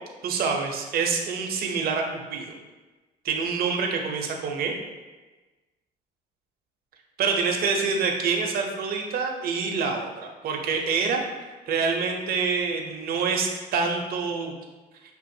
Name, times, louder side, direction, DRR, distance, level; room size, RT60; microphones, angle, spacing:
voice 1, 0.2-2.0 2.3-2.6 3.2-4.8 7.2-14.5, right 5 dB, 65° right, 2 dB, 0.7 m, -26 dB
6.6 x 2.4 x 2.7 m, 1.2 s
cardioid pair, 110°, 17 cm